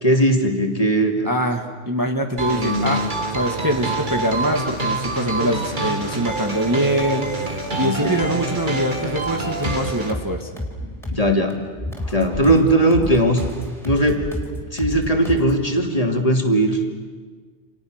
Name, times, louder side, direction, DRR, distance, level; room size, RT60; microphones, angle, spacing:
voice 1, 0.0-1.3 2.6-2.9 7.8-8.3 11.1-11.6 12.1-13.4 13.8-14.3 14.7-16.8, right 1 dB, 30° left, 2 dB, 2.8 m, -19 dB
voice 2, 1.2-3.1 3.3-10.5, equal, 15° right, 3 dB, 1.6 m, -23 dB
sound 1, 2.4-10.1, right 3 dB, 40° right, 2.2 m, -26 dB
sound 2, 9.3-15.6, left 1 dB, ahead, 4.6 m, -31 dB
29.5 x 28.5 x 6.5 m, 1.5 s
omnidirectional pair, 1.2 m